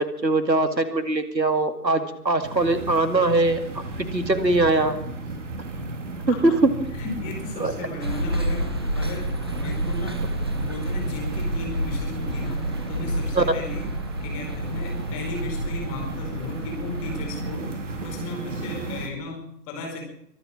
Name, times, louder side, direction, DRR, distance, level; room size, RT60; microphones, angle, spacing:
voice 1, 0.0-3.6 4.1-5.0 6.3-6.5 7.6-7.7 13.4-13.5, right 2 dB, 85° right, 9 dB, 2.3 m, -21 dB
sound 1, 2.4-19.1, right 2 dB, 45° right, 2.5 m, -34 dB
voice 2, 6.9-8.6 8.9-9.3 9.6-10.2 10.5-13.8 14.2-17.7 18.0-19.4 19.7-20.0, left 2 dB, 20° left, 1 dB, 4.6 m, -35 dB
sound 2, 8.0-17.6, equal, 15° right, 0.7 m, -30 dB
23.5 x 8.9 x 6.3 m, 0.74 s
figure-of-eight pair, 140°, 50 cm